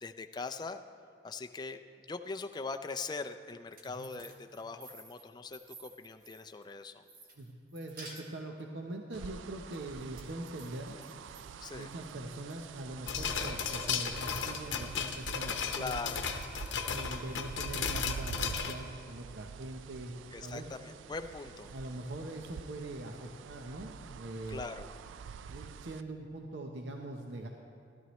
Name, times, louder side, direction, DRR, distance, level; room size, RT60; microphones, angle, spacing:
voice 1, 0.0-0.8 1.2-7.0 11.6-11.9 15.7-16.2 20.3-21.7 24.5-24.9, left 4 dB, 25° left, 7 dB, 0.4 m, -41 dB
sound 1, 3.5-6.7 7.1-8.6 9.7-11.4 11.8-12.5, right 2 dB, 50° right, 1.6 m, -53 dB
voice 2, 7.4-11.0 11.7-16.2 16.8-20.7 21.7-24.7 25.5-27.5, right 1 dB, 65° right, 2 dB, 0.7 m, -42 dB
sound 2, 9.1-26.0, right 6 dB, 85° right, 0.3 m, -47 dB
sound 3, 13.1-18.7, left 6 dB, 75° left, 0.8 m, -35 dB
15.5 x 12.5 x 3.1 m, 2.5 s
head